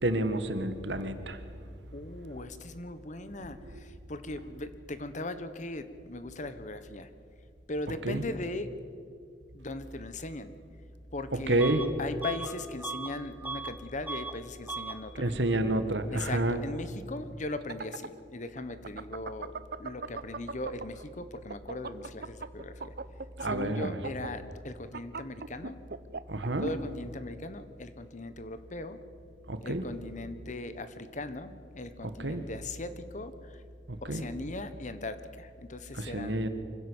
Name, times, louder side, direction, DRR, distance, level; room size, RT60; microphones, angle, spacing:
voice 1, 0.0-1.4 3.7-3.8 8.0-8.2 11.5-11.9 15.2-16.6 23.4-24.0 26.3-26.7 29.5-29.8 32.0-32.4 33.9-34.2 35.9-36.5, right 1 dB, 85° right, 9 dB, 1.8 m, -29 dB
voice 2, 1.9-7.1 7.7-8.7 9.5-10.5 11.1-11.7 12.0-15.3 16.1-22.9 23.4-25.8 26.6-29.0 29.6-33.6 34.0-36.4, left 2 dB, 45° left, 11 dB, 1.2 m, -39 dB
Bus / Alarm, 11.6-11.9 12.2-13.8 14.0-14.4 14.7-15.0, right 4 dB, 10° right, 1.0 m, -38 dB
sound 1, 17.4-21.0 21.4-26.7, right 4 dB, 60° right, 0.8 m, -39 dB
24.5 x 16.5 x 8.1 m, 2.3 s
head